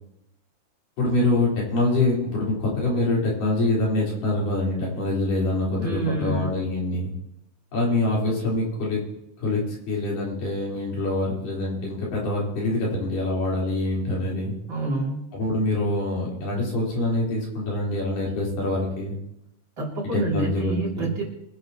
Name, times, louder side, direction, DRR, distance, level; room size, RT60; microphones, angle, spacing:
voice 1, 1.0-7.1 7.7-9.0 9.4-14.6 15.3-19.2 20.1-21.1, left 2 dB, 75° left, -5 dB, 5.9 m, -25 dB
voice 2, 5.8-6.5 14.7-15.3 19.8-21.2, right 2 dB, 35° right, -4 dB, 3.2 m, -27 dB
24.0 x 10.5 x 3.0 m, 0.81 s
omnidirectional pair, 3.9 m